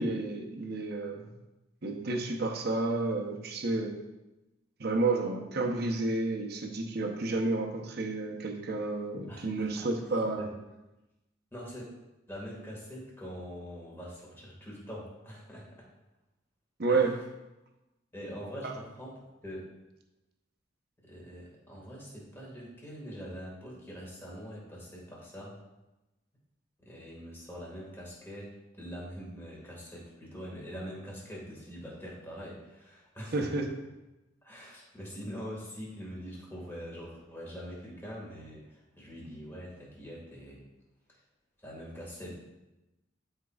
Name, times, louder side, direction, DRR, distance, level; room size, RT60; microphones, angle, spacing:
voice 1, 0.0-1.3 1.8-4.0 4.8-10.5 16.8-17.2 18.6-18.7 33.3-33.7, right 3 dB, 55° right, 3 dB, 0.8 m, -30 dB
voice 2, 9.3-9.9 10.4-10.5 11.5-11.9 12.3-15.9 16.9-17.0 18.1-19.7 21.0-25.6 26.8-33.7 34.4-40.6 41.1-41.2 41.6-42.3, equal, 10° left, -4 dB, 1.8 m, -44 dB
13.0 x 4.5 x 2.4 m, 1.0 s
head